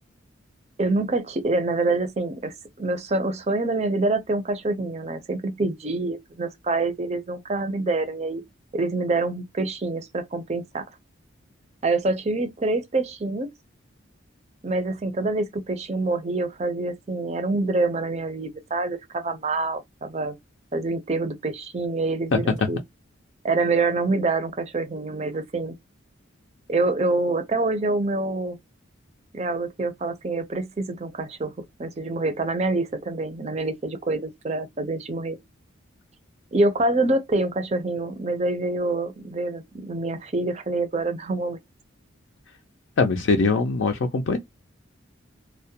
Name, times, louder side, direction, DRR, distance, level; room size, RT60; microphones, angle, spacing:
voice 1, 0.8-8.4 8.7-10.8 11.8-13.5 14.6-20.3 20.7-22.8 23.4-25.8 26.7-28.6 29.3-31.5 31.8-35.4 36.5-41.6, right 2 dB, 30° right, 0.5 m, -26 dB
voice 2, 43.0-44.4, left 4 dB, 65° left, 0.4 m, -22 dB
2.2 x 2.1 x 2.7 m
head